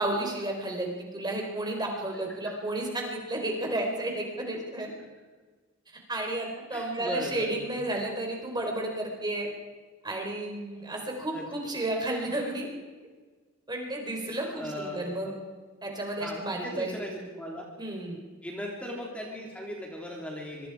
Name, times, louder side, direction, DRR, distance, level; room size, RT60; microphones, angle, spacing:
voice 1, 0.0-4.9 6.1-9.5 10.0-12.7 13.7-15.3 15.8-16.9 17.8-18.2, right 1 dB, 20° right, 1 dB, 4.2 m, -32 dB
voice 2, 6.7-7.7 11.3-11.5 14.3-15.3 16.2-17.6 18.4-20.7, left 1 dB, 5° left, -1 dB, 3.4 m, -38 dB
25.5 x 23.5 x 4.9 m, 1.4 s
head